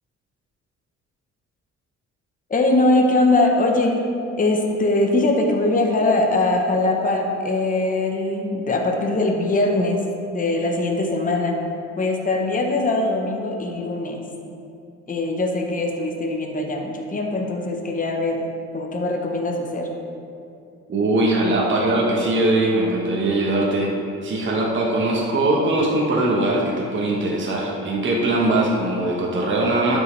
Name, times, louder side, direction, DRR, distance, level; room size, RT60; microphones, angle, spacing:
voice 1, 2.5-3.9 4.4-10.0 10.3-11.6 12.0-14.2 15.1-18.5 18.7-19.9, left 2 dB, 25° left, 1 dB, 1.0 m, -21 dB
voice 2, 20.9-23.9 24.2-30.0, right 2 dB, 40° right, -3 dB, 1.2 m, -21 dB
12.0 x 5.4 x 3.2 m, 2.5 s
cardioid pair, 90°, 30 cm